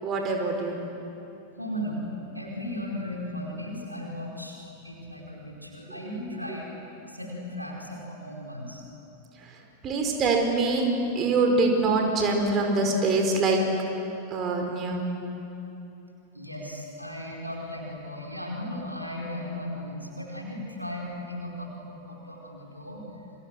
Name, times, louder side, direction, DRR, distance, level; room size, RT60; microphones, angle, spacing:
voice 1, 0.0-0.8 9.4-10.9 11.1-13.6 14.3-15.1, right 3 dB, 30° right, 2 dB, 5.0 m, -24 dB
voice 2, 1.6-6.7 7.1-8.8 16.3-23.0, left 1 dB, 90° right, -1 dB, 4.8 m, -36 dB
30.0 x 25.5 x 7.9 m, 2.9 s
figure-of-eight pair, 90°, 0 cm